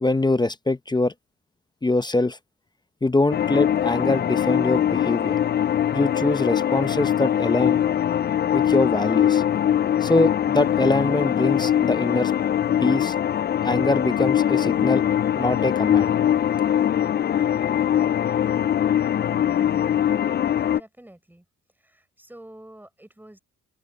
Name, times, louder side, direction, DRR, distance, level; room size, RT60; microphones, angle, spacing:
voice 1, 0.0-1.1 1.8-2.4 3.0-5.4 5.9-7.8 8.5-9.4 10.0-12.3 12.8-13.2 13.6-15.0 15.4-16.1, left 2 dB, 15° left, 0.8 m, -23 dB
sound 1, 3.3-20.8, left 10 dB, 35° left, 0.4 m, -22 dB
voice 2, 20.7-21.4 21.8-23.4, right 1 dB, 5° right, 6.7 m, -47 dB
open air
cardioid pair, 90°, 30 cm